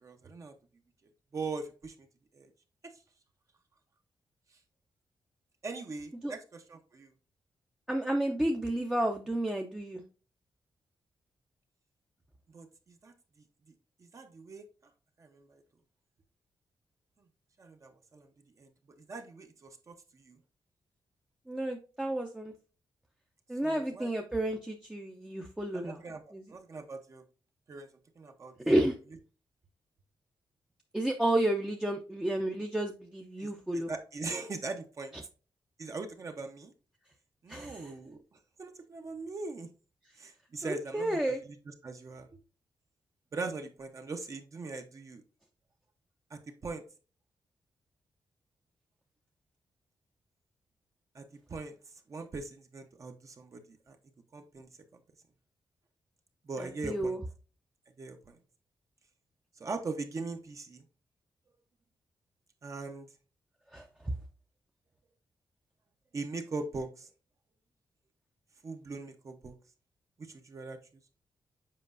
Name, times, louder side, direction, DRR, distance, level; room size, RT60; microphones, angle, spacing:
voice 1, 0.0-0.5 1.3-1.9 2.3-2.5 5.6-7.1 12.5-13.1 14.0-14.7 15.2-15.6 17.6-18.3 18.6-18.7 19.0-20.4 23.6-24.1 25.7-27.2 27.7-27.9 28.2-28.5 33.4-33.5 33.7-35.1 35.8-36.7 37.4-38.2 38.6-39.7 40.2-42.3 43.3-45.2 46.3-46.8 51.1-51.2 51.5-51.7 52.1-54.0 54.3-54.7 56.5-57.2 58.0-58.4 59.6-60.8 62.6-63.1 66.1-67.1 68.6-69.5 70.2-70.8, right 3 dB, 40° right, 6 dB, 0.8 m, -41 dB
voice 2, 7.9-10.0 21.5-22.5 23.5-26.0 26.3-26.4 28.7-28.9 30.9-33.9 37.5-37.9 40.6-41.4 56.6-57.2 63.7-63.9, right 1 dB, 10° right, 1 dB, 0.6 m, -31 dB
7.6 x 5.0 x 2.5 m, 0.35 s
wide cardioid pair, 150°, 8 cm